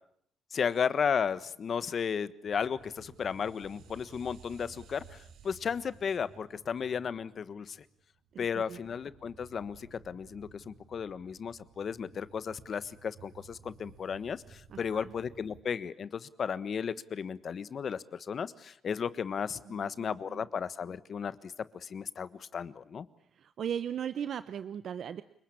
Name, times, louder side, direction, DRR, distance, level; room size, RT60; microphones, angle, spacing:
voice 1, 0.5-7.8 8.4-23.1, left 7 dB, 50° left, 15 dB, 1.4 m, -34 dB
sound 1, 2.4-15.6, right 6 dB, 85° right, 4.2 m, -56 dB
voice 2, 8.3-8.8 14.7-15.1 19.7-20.5 23.4-25.2, right 9 dB, 60° right, 13 dB, 1.0 m, -38 dB
29.5 x 20.5 x 8.6 m, 0.68 s
cardioid pair, 90°, 0 cm